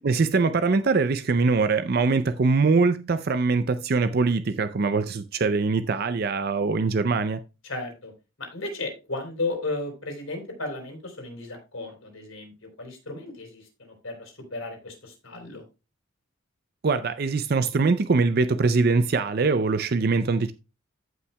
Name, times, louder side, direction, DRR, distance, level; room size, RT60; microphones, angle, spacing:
voice 1, 0.0-7.4 16.8-20.5, right 4 dB, 45° right, 0.4 m, -23 dB
voice 2, 7.6-8.1 8.4-15.6, left 2 dB, 80° left, 3.5 m, -34 dB
15.0 x 5.6 x 2.2 m
head